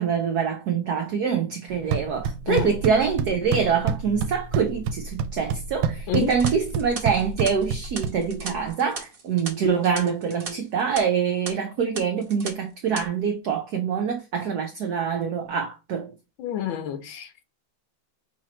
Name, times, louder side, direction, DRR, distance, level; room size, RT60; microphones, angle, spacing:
voice 1, 0.0-16.1, right 6 dB, 70° right, 1.0 m, -25 dB
sound 1, 1.7-8.7, right 6 dB, 85° right, 1.4 m, -29 dB
voice 2, 6.1-6.4 16.4-17.4, left 9 dB, 70° left, 1.4 m, -29 dB
sound 2, 6.2-10.5 10.8-11.0 11.4-11.5 11.9-12.5 12.8-13.0, right 4 dB, 45° right, 0.7 m, -37 dB
5.8 x 3.0 x 3.0 m
omnidirectional pair, 2.3 m